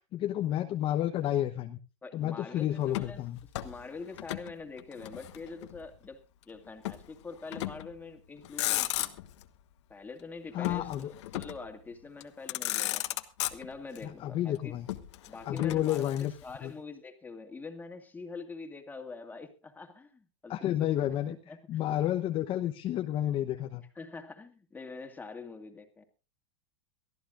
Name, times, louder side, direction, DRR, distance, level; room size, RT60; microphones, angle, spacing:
voice 1, 0.0-1.8 2.1-3.4 10.5-11.1 14.0-14.9 15.5-16.3 16.6-16.7 20.5-21.4 21.7-23.8, left 12 dB, 35° left, 5 dB, 1.0 m, -30 dB
voice 2, 2.0-3.2 3.6-9.1 9.9-13.2 13.5-14.7 15.3-16.1 16.4-21.8 24.0-26.0, left 4 dB, 10° left, 5 dB, 2.3 m, -45 dB
Motor vehicle (road), 2.9-4.5 4.8-5.9 6.8-7.1 7.5-8.0 8.4-9.4 10.6-11.7 12.2-12.3 12.5-14.0 14.9-16.5, left 15 dB, 70° left, 1.3 m, -35 dB
23.5 x 14.0 x 2.5 m, 0.32 s
hypercardioid pair, 125°, 15 cm